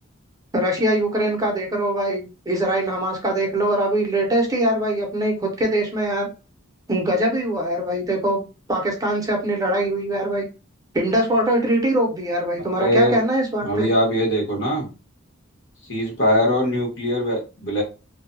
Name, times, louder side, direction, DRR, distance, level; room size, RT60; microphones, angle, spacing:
voice 1, 0.5-6.3 6.9-8.4 8.7-10.4 10.9-13.9, right 1 dB, 20° right, 1 dB, 0.6 m, -22 dB
voice 2, 12.7-13.2 13.6-14.9 15.9-17.8, equal, 60° left, -3 dB, 1.3 m, -21 dB
2.6 x 2.2 x 2.5 m, 0.31 s
head